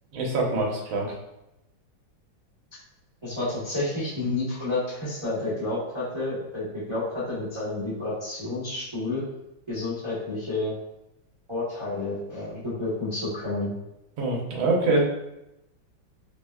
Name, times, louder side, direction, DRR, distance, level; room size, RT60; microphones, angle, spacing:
voice 1, 0.1-1.1 14.2-15.0, right 2 dB, 75° right, -2 dB, 1.6 m, -24 dB
voice 2, 3.2-9.2 9.7-10.7 11.5-13.7, left 2 dB, 40° right, -11 dB, 0.4 m, -30 dB
4.7 x 2.1 x 2.3 m, 0.89 s
omnidirectional pair, 2.2 m